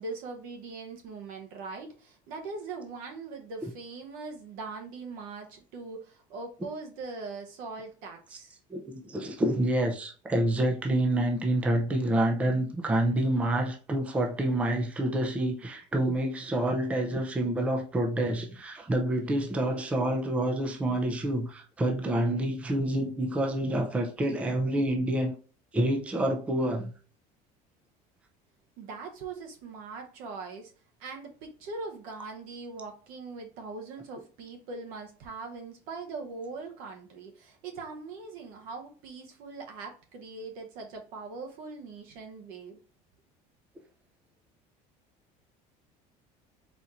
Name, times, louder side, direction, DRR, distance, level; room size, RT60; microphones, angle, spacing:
voice 1, 0.0-8.6 28.8-30.7 31.0-42.8, right 4 dB, 65° right, 0.9 m, -41 dB
voice 2, 8.7-25.3 25.7-26.9, right 1 dB, 10° right, 0.5 m, -28 dB
4.3 x 4.2 x 2.5 m
cardioid pair, 180°, 16 cm